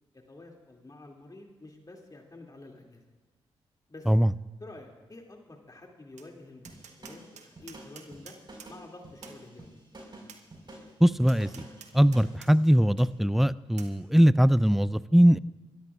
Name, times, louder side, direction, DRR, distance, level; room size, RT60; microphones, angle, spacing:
voice 1, 0.3-3.0 3.9-4.1 4.6-8.4 8.7-9.8, left 2 dB, 30° left, 1 dB, 2.5 m, -49 dB
Tap, 6.2-6.3 6.6-8.7 9.2-9.4 10.3-10.4 11.3-12.5 13.0-13.1 13.8-13.9, right 7 dB, 70° right, 1.2 m, -49 dB
sound 1, 6.6-12.4, right 1 dB, 40° right, 4.8 m, -49 dB
voice 2, 11.0-11.5 11.9-15.4, equal, ahead, 18 dB, 0.4 m, -21 dB
27.5 x 13.0 x 2.4 m, 1.3 s
supercardioid pair, 45°, 12 cm